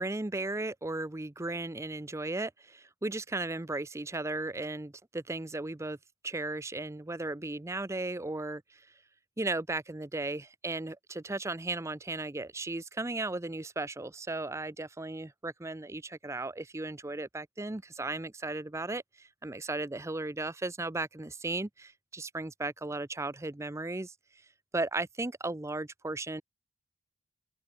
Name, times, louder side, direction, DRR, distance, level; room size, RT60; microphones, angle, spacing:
voice 1, 0.0-6.0 6.2-8.8 9.4-24.1 24.7-26.4, right 2 dB, 15° right, 0.5 m, -36 dB
head